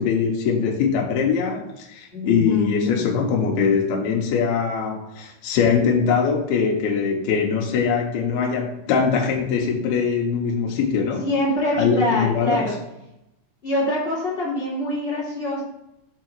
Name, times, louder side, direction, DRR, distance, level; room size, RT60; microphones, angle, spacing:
voice 1, 0.0-11.3 11.8-12.7, left 6 dB, 85° left, 0 dB, 2.2 m, -22 dB
voice 2, 2.1-3.2 11.2-12.8 13.6-15.6, left 1 dB, 25° left, -7 dB, 1.3 m, -24 dB
8.1 x 3.8 x 4.5 m, 0.85 s
omnidirectional pair, 5.6 m